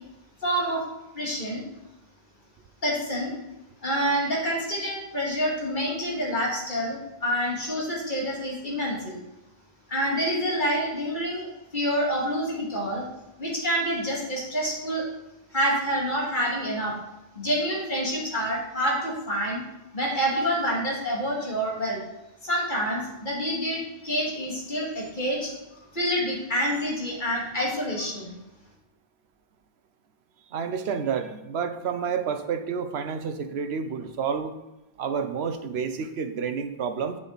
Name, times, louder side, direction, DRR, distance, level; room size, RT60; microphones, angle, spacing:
voice 1, 0.4-0.8 1.1-1.6 2.8-3.3 3.8-9.2 9.9-13.1 13.4-15.1 15.5-16.9 17.3-19.6 19.9-22.0 22.4-25.5 25.9-28.3, equal, 50° left, -4 dB, 2.6 m, -27 dB
voice 2, 30.5-34.6 35.0-37.2, right 6 dB, 85° right, 8 dB, 1.0 m, -29 dB
8.8 x 7.4 x 4.1 m, 0.98 s
omnidirectional pair, 1.1 m